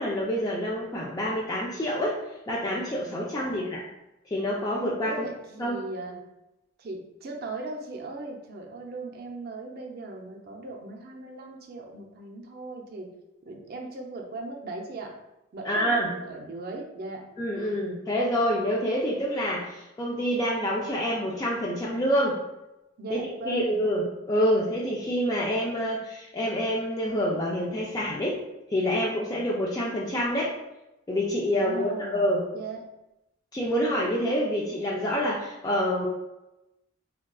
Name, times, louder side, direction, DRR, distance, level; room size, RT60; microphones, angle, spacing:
voice 1, 0.0-2.2 2.5-3.8 4.3-5.3 5.6-5.8 15.6-16.1 17.4-22.4 23.1-23.2 23.5-28.4 28.7-30.6 31.1-32.4 33.5-36.1, equal, 20° left, -5 dB, 0.3 m, -27 dB
voice 2, 3.4-3.8 5.0-6.2 6.8-13.1 13.4-15.1 15.5-17.2 23.0-23.8 31.6-32.3 32.5-32.8, right 2 dB, 50° right, 1 dB, 0.5 m, -38 dB
3.6 x 2.3 x 2.3 m, 0.95 s
head